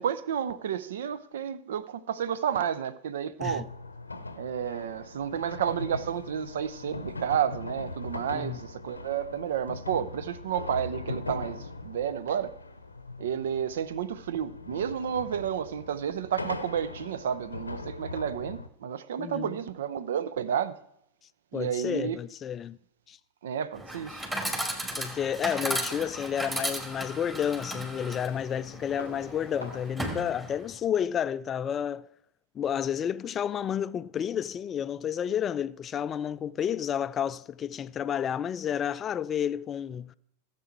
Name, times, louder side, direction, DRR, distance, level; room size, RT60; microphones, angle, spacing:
voice 1, 0.0-3.7 4.4-12.5 13.2-20.8 21.5-22.2 23.4-24.2, right 8 dB, 60° right, 0.6 m, -31 dB
sound 1, 3.4-18.7, left 3 dB, 80° left, 0.7 m, -40 dB
voice 2, 19.2-19.6 21.5-22.8 23.1-23.2 25.0-32.1 32.5-40.1, left 9 dB, 25° left, 0.4 m, -31 dB
Chatter / Coin (dropping), 23.7-30.8, right 1 dB, 10° right, 2.3 m, -35 dB
sound 2, 24.2-29.9, equal, 85° right, 2.7 m, -49 dB
16.0 x 7.5 x 4.6 m
figure-of-eight pair, 90°, 0 cm